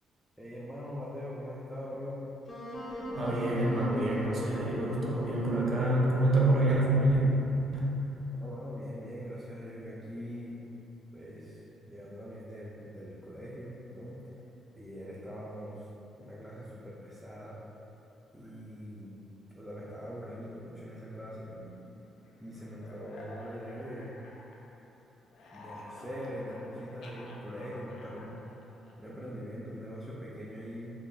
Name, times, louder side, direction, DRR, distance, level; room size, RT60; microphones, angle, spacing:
voice 1, 0.4-2.2 8.3-10.6 11.1-14.2 14.7-15.9 16.2-17.6 18.3-19.1 19.6-21.5 22.4-24.1 25.5-28.4 29.0-30.9, equal, 5° right, -7 dB, 0.4 m, -42 dB
Wind instrument woodwind instrument, 2.5-7.6, left 1 dB, 35° left, 0.6 m, -39 dB
voice 2, 3.1-7.2 7.7-8.0, right 1 dB, 50° right, -4 dB, 0.6 m, -27 dB
sound 1, 21.4-24.9 25.2-29.3, left 1 dB, 75° left, 0.3 m, -51 dB
2.4 x 2.0 x 3.6 m, 3.0 s
cardioid pair, 90°, 0 cm